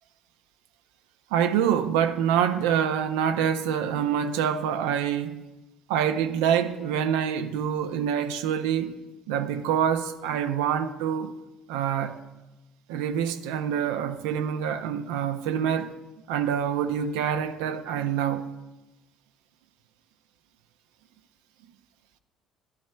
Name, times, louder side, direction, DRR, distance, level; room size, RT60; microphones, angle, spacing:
voice 1, 1.3-5.4 5.9-8.9 9.3-11.3 11.7-12.2 12.9-15.9 16.3-18.5, right 8 dB, 85° right, 0.4 m, -26 dB
11.5 x 10.5 x 2.2 m
supercardioid pair, 75°, 0 cm